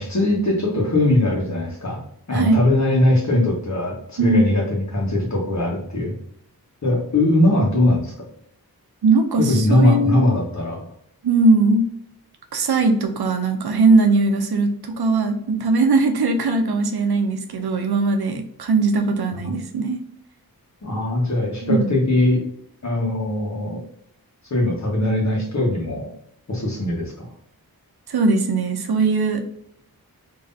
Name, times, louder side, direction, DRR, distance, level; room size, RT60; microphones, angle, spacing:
voice 1, 0.0-2.0 2.3-6.1 6.8-8.1 9.4-10.8 19.4-19.5 20.8-22.5 22.8-23.8 24.5-26.1 26.5-27.2, left 1 dB, 50° left, -1 dB, 1.3 m, -20 dB
voice 2, 4.2-4.5 9.0-10.3 11.2-11.9 12.5-20.0 21.6-21.9 28.1-29.4, right 3 dB, 90° right, 5 dB, 0.7 m, -19 dB
3.7 x 3.0 x 2.6 m, 0.69 s
wide cardioid pair, 90°, 37 cm